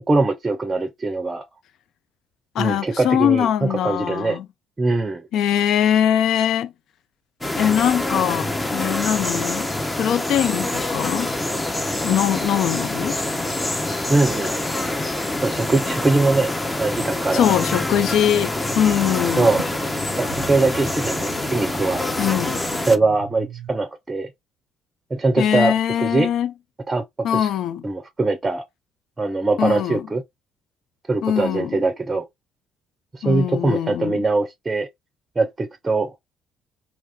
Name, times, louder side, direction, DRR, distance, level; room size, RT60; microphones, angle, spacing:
voice 1, 0.1-1.5 2.6-4.4 4.8-5.3 14.1-14.5 15.4-17.6 19.4-19.6 20.2-22.1 22.8-24.3 25.1-26.3 26.9-27.0 27.3-27.5 27.8-28.6 29.2-30.2 31.1-32.2 33.1-34.9 35.4-36.1, right 3 dB, 25° right, 0.5 m, -22 dB
voice 2, 2.5-4.5 5.3-6.7 7.6-9.7 10.0-11.3 12.0-13.2 17.3-19.5 22.2-22.6 25.4-26.5 27.2-27.8 29.6-30.0 31.2-31.8 33.2-34.2, left 10 dB, 60° left, 0.3 m, -22 dB
sound 1, 7.4-23.0, left 2 dB, 15° left, 0.6 m, -26 dB
sound 2, 18.7-23.7, right 9 dB, 80° right, 0.4 m, -40 dB
2.5 x 2.4 x 3.4 m
hypercardioid pair, 55°, 0 cm